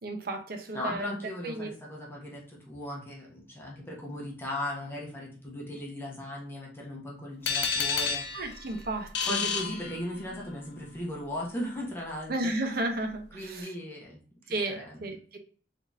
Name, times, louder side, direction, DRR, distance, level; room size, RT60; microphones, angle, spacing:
voice 1, 0.0-1.1 1.4-1.7 8.3-9.4 12.3-13.7 14.5-15.4, right 2 dB, 60° right, 4 dB, 0.7 m, -33 dB
voice 2, 0.7-8.5 9.2-12.3 13.3-14.2 14.7-15.0, left 1 dB, 15° left, -3 dB, 1.0 m, -37 dB
sound 1, 7.5-10.5, left 5 dB, 70° left, 0.7 m, -31 dB
3.7 x 3.6 x 2.6 m, 0.43 s
head